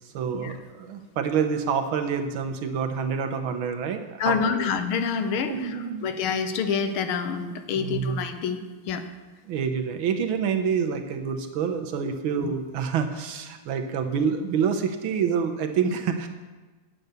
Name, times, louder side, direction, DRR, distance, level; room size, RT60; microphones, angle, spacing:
voice 1, 0.1-4.7 5.5-6.1 7.8-8.2 9.5-16.3, right 6 dB, 75° right, 6 dB, 1.6 m, -27 dB
voice 2, 4.2-8.6 8.9-9.0, left 6 dB, 90° left, 8 dB, 1.7 m, -27 dB
8.8 x 8.0 x 6.7 m, 1.3 s
omnidirectional pair, 2.3 m